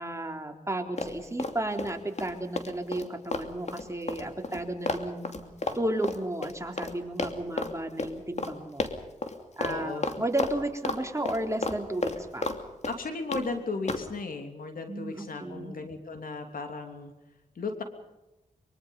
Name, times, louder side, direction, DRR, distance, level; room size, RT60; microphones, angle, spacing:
voice 1, 0.0-5.4 5.8-8.9 9.6-12.5 14.9-15.8, right 1 dB, 20° right, 3 dB, 3.6 m, -33 dB
Run, 1.0-1.9 2.2-6.9 7.2-7.7 8.0-8.1 8.4-8.5 8.8-9.3 9.6-9.8 10.0-11.0 11.3-12.6 12.8-13.4 13.9-14.1, left 3 dB, 50° left, 2.8 m, -32 dB
voice 2, 9.6-10.1 12.9-17.1 17.5-17.8, left 3 dB, 80° left, 6 dB, 3.2 m, -35 dB
24.0 x 23.5 x 5.6 m, 0.99 s
cardioid pair, 55°, 14 cm